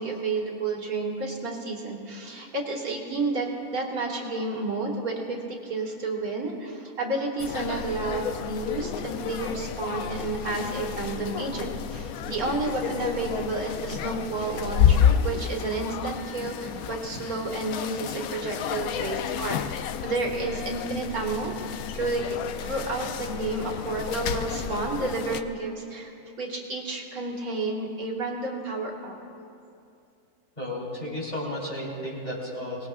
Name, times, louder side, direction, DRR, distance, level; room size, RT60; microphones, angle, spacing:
voice 1, 0.0-22.3 22.6-26.1 26.4-29.1, right 3 dB, 70° right, -1 dB, 2.1 m, -31 dB
sound 1, 7.4-25.4, left 8 dB, 75° left, 1.0 m, -30 dB
voice 2, 30.6-32.9, left 1 dB, 25° left, -5 dB, 3.8 m, -33 dB
24.0 x 19.5 x 2.4 m, 2.6 s
omnidirectional pair, 1.6 m